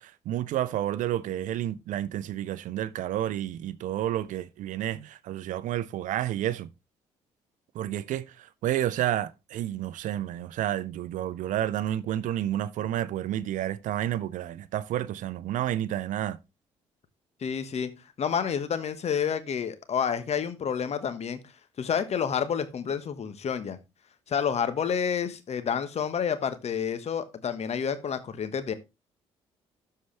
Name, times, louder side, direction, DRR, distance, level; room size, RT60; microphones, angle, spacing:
voice 1, 0.0-6.7 7.7-16.4, right 12 dB, 60° right, 0.6 m, -30 dB
voice 2, 17.4-17.9 18.2-21.4 21.8-23.8 24.3-28.7, left 7 dB, 50° left, 1.3 m, -29 dB
12.5 x 4.6 x 3.3 m
hypercardioid pair, 50°, 15 cm